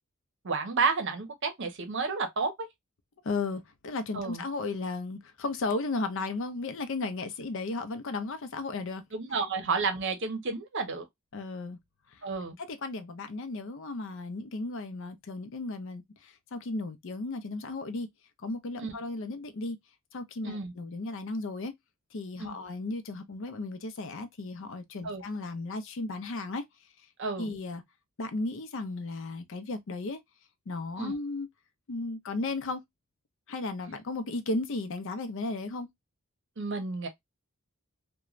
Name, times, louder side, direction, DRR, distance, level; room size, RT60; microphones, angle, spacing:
voice 1, 0.4-2.7 4.1-4.4 9.1-11.1 12.2-12.6 18.8-18.9 20.4-20.7 22.4-22.6 25.0-25.2 27.2-27.5 31.0-31.1 36.6-37.1, right 4 dB, 60° right, 0.7 m, -31 dB
voice 2, 3.2-9.0 11.3-11.8 12.1-12.2 12.6-18.1 18.4-19.8 20.1-21.7 22.1-26.6 27.4-27.8 28.2-30.2 30.7-31.5 31.9-32.8 33.5-35.9, left 3 dB, 60° left, 0.5 m, -35 dB
3.0 x 2.2 x 2.3 m
head